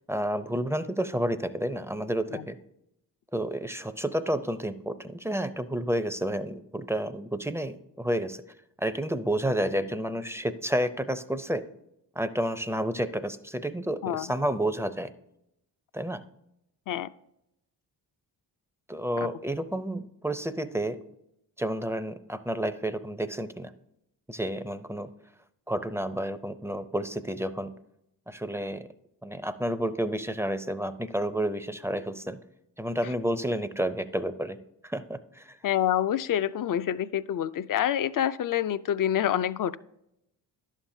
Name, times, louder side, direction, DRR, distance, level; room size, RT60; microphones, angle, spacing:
voice 1, 0.1-2.6 3.3-8.4 8.8-11.6 12.2-15.1 15.9-16.2 18.9-21.0 21.6-23.7 24.3-25.1 25.7-27.7 28.3-28.9 29.2-32.4 32.8-34.6 34.8-35.6, right 1 dB, 5° right, 11 dB, 0.5 m, -30 dB
voice 2, 35.6-39.8, left 10 dB, 50° left, 15 dB, 0.5 m, -27 dB
11.0 x 7.3 x 2.7 m, 0.80 s
cardioid pair, 55°, 44 cm